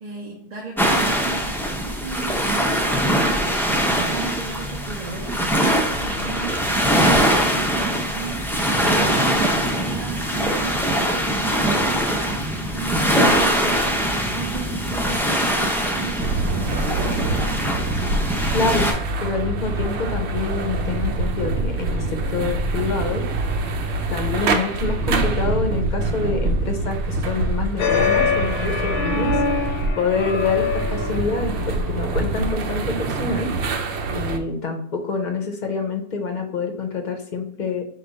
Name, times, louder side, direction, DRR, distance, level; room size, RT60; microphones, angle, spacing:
voice 1, 0.0-5.3 5.7-10.8 11.1-16.5, right 5 dB, 45° right, -3 dB, 0.8 m, -35 dB
sound 1, 0.8-18.9, equal, 5° left, 0.4 m, -22 dB
sound 2, 16.2-34.4, right 2 dB, 85° right, 0.9 m, -25 dB
voice 2, 18.5-18.9 19.2-23.2 24.1-29.4 30.0-33.5 34.1-37.9, left 3 dB, 50° left, 4 dB, 0.7 m, -26 dB
sound 3, 27.8-32.5, left 5 dB, 75° left, 0.8 m, -24 dB
5.2 x 2.3 x 3.9 m, 0.67 s
omnidirectional pair, 1.1 m